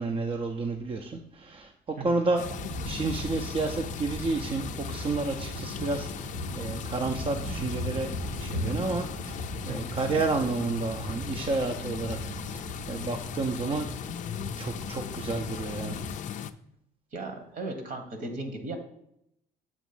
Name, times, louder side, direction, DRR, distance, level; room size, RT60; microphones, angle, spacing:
voice 1, 0.0-2.4 2.8-8.1 8.4-9.4 9.7-12.2 12.5-13.9 14.6-16.0, right 3 dB, 30° right, 4 dB, 0.6 m, -31 dB
sound 1, 2.4-16.5, left 9 dB, 50° left, 0.4 m, -39 dB
sound 2, 2.4-16.2, right 1 dB, 70° right, 2.0 m, -38 dB
voice 2, 17.1-18.8, right 2 dB, 55° right, 6 dB, 1.4 m, -36 dB
7.2 x 3.0 x 6.0 m, 0.75 s
cardioid pair, 110°, 17 cm